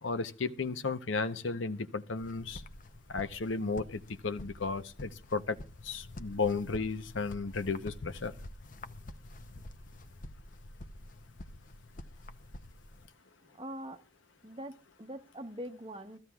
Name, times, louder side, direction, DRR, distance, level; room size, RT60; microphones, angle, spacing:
voice 1, 0.0-2.6 3.1-5.6 5.8-8.3, left 4 dB, 75° left, 0.8 m, -34 dB
sound 1, 2.2-13.1, left 1 dB, 40° left, 0.7 m, -48 dB
voice 2, 13.6-14.0 14.4-16.2, equal, 25° right, 0.8 m, -43 dB
22.5 x 14.5 x 2.3 m
head